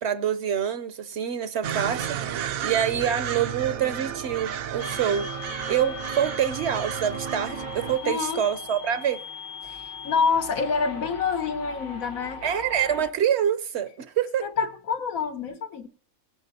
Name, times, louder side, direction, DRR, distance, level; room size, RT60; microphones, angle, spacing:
voice 1, 0.0-5.3 5.7-9.2 12.4-14.4, right 9 dB, 60° right, 0.9 m, -26 dB
sound 1, 1.6-8.0, right 9 dB, 85° right, 1.2 m, -32 dB
sound 2, 4.8-13.1, left 5 dB, 60° left, 1.5 m, -39 dB
voice 2, 8.0-8.4 9.6-12.4 14.4-15.9, left 5 dB, 85° left, 1.6 m, -27 dB
18.0 x 12.0 x 2.7 m
omnidirectional pair, 1.4 m